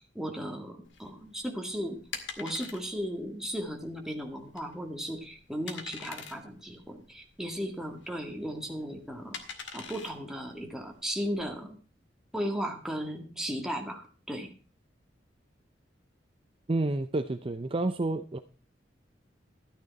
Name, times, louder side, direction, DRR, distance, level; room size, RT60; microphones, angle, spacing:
voice 1, 0.0-2.0 2.4-9.4 9.7-11.8 12.3-14.5, equal, 5° right, 2 dB, 2.0 m, -36 dB
sound 1, 0.9-11.5, left 6 dB, 85° left, 2.0 m, -45 dB
voice 2, 16.7-18.4, right 2 dB, 30° right, 9 dB, 0.6 m, -29 dB
13.5 x 9.4 x 4.1 m, 0.37 s
head